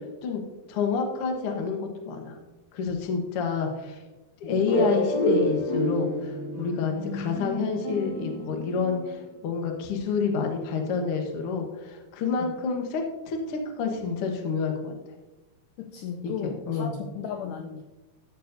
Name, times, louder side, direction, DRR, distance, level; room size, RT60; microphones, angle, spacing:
voice 1, 0.7-2.4 2.7-4.0 4.4-14.9 16.2-16.9, left 5 dB, 65° left, 3 dB, 1.4 m, -29 dB
sound 1, 4.7-9.2, left 1 dB, 35° left, 3.0 m, -28 dB
voice 2, 15.8-17.8, left 7 dB, 80° left, 4 dB, 1.8 m, -35 dB
13.5 x 7.1 x 2.7 m, 1.1 s
omnidirectional pair, 4.2 m